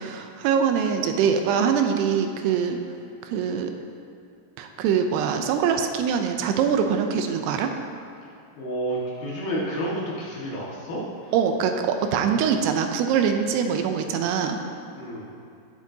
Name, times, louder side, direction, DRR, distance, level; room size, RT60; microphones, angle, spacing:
voice 1, 0.0-2.8 3.2-3.7 4.6-7.7 11.3-14.6, right 7 dB, 85° right, 5 dB, 2.7 m, -23 dB
voice 2, 8.6-11.3 14.9-15.3, right 1 dB, 65° left, -6 dB, 3.3 m, -30 dB
18.0 x 8.3 x 2.8 m, 2.5 s
omnidirectional pair, 4.8 m